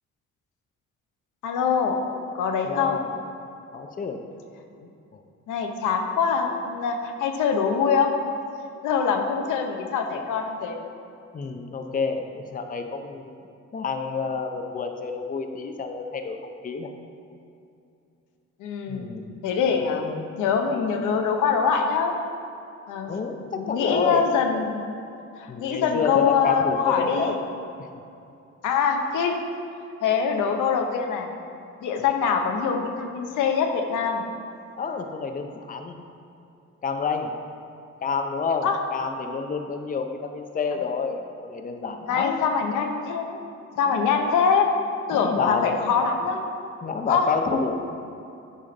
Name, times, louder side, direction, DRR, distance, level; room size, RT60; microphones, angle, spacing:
voice 1, 1.4-2.0 2.3-3.0 4.8-4.9 5.5-8.1 8.8-10.8 18.6-19.1 19.4-20.1 20.4-22.1 22.9-23.1 23.4-24.8 25.4-27.4 28.6-29.4 30.0-31.3 31.8-34.2 38.6-38.8 42.1-43.4 43.8-44.7 45.1-46.4 47.1-47.3, left 6 dB, 85° left, 3 dB, 0.8 m, -24 dB
voice 2, 2.6-3.1 3.7-4.2 11.3-13.4 13.7-16.9 18.9-19.4 20.0-20.3 23.1-24.3 25.5-27.3 27.8-27.9 34.8-36.0 36.8-37.3 38.0-42.4 43.9-44.0 45.1-45.8 46.8-47.8, left 5 dB, 30° left, 5 dB, 0.6 m, -29 dB
9.7 x 5.0 x 3.9 m, 2.7 s
cardioid pair, 90°, 30 cm